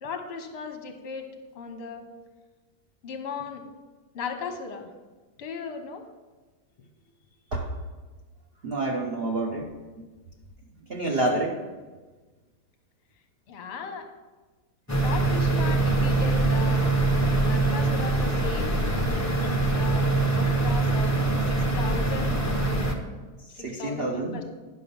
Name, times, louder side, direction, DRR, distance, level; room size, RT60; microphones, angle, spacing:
voice 1, 0.0-1.2 1.5-2.1 3.0-3.6 4.1-4.9 5.4-6.0 13.5-14.1 15.0-16.9 17.4-18.8 19.7-21.1 21.4-22.5 23.5-24.4, left 5 dB, 40° left, 6 dB, 1.0 m, -37 dB
voice 2, 8.6-9.7 10.9-11.6 23.6-24.4, right 2 dB, 45° right, -1 dB, 0.8 m, -28 dB
sound 1, 14.9-22.9, right 2 dB, 25° left, 0.3 m, -23 dB
11.0 x 6.1 x 5.4 m, 1.3 s
omnidirectional pair, 2.1 m